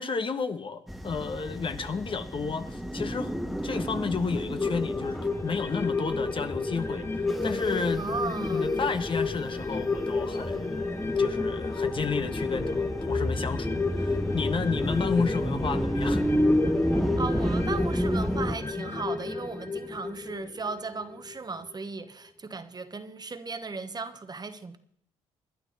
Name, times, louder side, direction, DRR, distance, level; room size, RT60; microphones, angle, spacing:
voice 1, 0.0-8.0 8.5-16.2, left 5 dB, 40° left, 1.5 m, -32 dB
sound 1, 0.9-18.6, equal, ahead, 1.3 m, -31 dB
sound 2, 4.6-21.4 21.7-21.8, left 3 dB, 20° left, 1.2 m, -31 dB
voice 2, 8.0-8.7 17.2-24.8, right 4 dB, 30° right, 1.3 m, -36 dB
21.0 x 11.5 x 4.3 m
hypercardioid pair, 55°, 13 cm